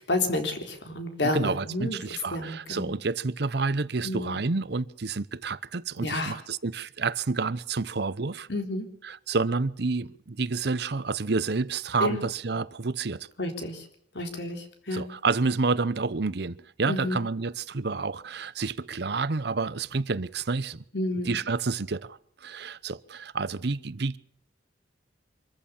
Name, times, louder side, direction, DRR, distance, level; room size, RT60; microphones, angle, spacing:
voice 1, 0.1-2.0 2.3-2.9 4.0-4.4 6.0-6.4 8.5-8.9 12.0-12.2 13.4-13.9 14.1-15.1 16.8-17.2 20.9-21.4, left 2 dB, 75° left, 3.8 m, -30 dB
voice 2, 1.2-8.5 9.0-13.3 14.9-20.8 21.3-24.2, right 4 dB, 65° right, 0.8 m, -29 dB
25.0 x 14.5 x 7.2 m
head